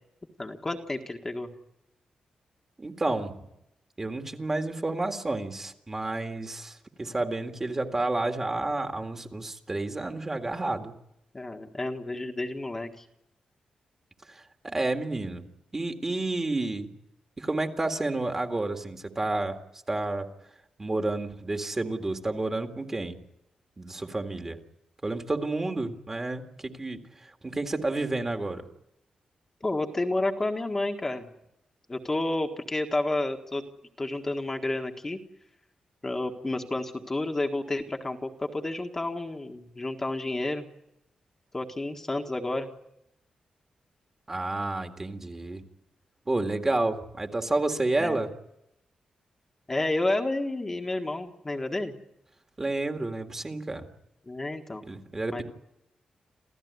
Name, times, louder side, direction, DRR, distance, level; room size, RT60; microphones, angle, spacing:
voice 1, 0.4-1.5 11.3-13.0 29.6-31.3 31.9-33.6 34.0-35.2 36.0-40.7 41.5-42.7 48.0-48.2 49.7-51.9 54.3-54.8 55.3-55.4, left 2 dB, 20° left, 3 dB, 1.6 m, -30 dB
voice 2, 2.8-3.4 4.0-10.9 14.3-15.5 15.7-16.9 17.4-19.6 19.9-20.3 20.8-23.2 23.8-24.6 25.0-28.6 44.3-45.6 46.3-48.3 52.6-53.9 54.9-55.4, right 2 dB, 20° right, 5 dB, 1.9 m, -30 dB
28.0 x 15.5 x 9.5 m, 0.83 s
wide cardioid pair, 155°, 2 cm